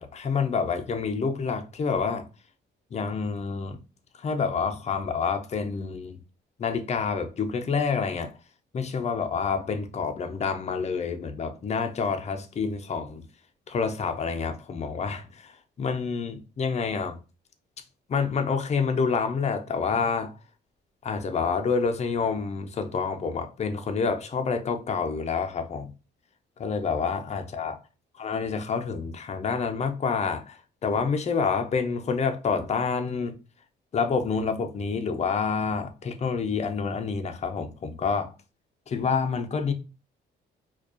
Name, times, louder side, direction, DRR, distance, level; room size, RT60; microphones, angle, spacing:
voice 1, 0.0-2.3 2.9-3.8 4.2-6.2 6.6-8.4 8.7-13.2 13.7-15.5 15.8-17.2 18.1-20.3 21.0-25.9 26.6-27.8 28.2-33.4 33.9-38.3 38.9-39.7, left 5 dB, 35° left, 0.4 m, -28 dB
2.3 x 2.2 x 2.5 m
cardioid pair, 90°, 20 cm